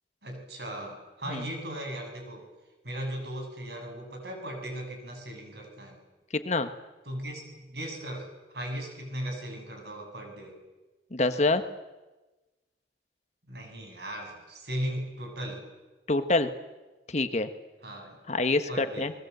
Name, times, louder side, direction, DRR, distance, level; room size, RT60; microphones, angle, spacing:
voice 1, 0.2-2.5 2.8-6.0 7.1-8.3 8.5-10.6 13.5-15.6 17.8-18.2 18.7-19.1, right 1 dB, 65° right, 3 dB, 7.4 m, -37 dB
voice 2, 6.3-6.7 11.1-11.6 16.1-16.5 17.1-17.5 18.3-19.1, left 2 dB, 40° left, 9 dB, 1.4 m, -26 dB
29.5 x 21.5 x 8.2 m, 1.1 s
head